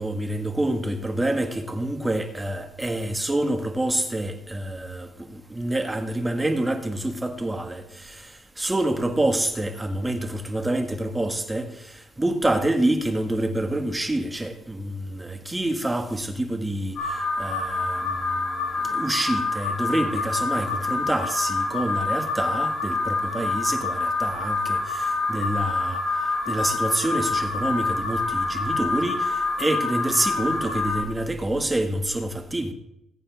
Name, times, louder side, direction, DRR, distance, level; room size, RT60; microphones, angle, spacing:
voice 1, 0.0-26.0 26.5-32.7, right 1 dB, 15° right, 6 dB, 1.8 m, -27 dB
Alarm, 17.0-31.0, left 3 dB, 65° left, 4.9 m, -27 dB
20.0 x 8.5 x 3.6 m, 0.83 s
cardioid pair, 85°, 0 cm